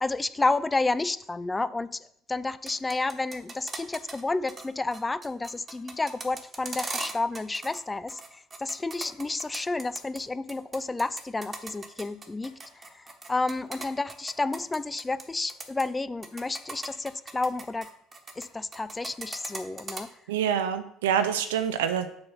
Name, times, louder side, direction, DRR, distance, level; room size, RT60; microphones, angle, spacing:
voice 1, 0.0-17.9 18.4-20.1, left 3 dB, 20° left, 16 dB, 0.4 m, -31 dB
sound 1, 2.5-4.2 4.5-4.7 4.9-7.8 8.1-10.2 10.5-15.2 15.5-15.8 16.2-18.5 18.7-20.0, right 3 dB, 30° right, 1.3 m, -38 dB
voice 2, 20.3-22.1, right 8 dB, 80° right, 9 dB, 0.4 m, -26 dB
6.8 x 3.9 x 5.7 m, 0.73 s
hypercardioid pair, 65°, 0 cm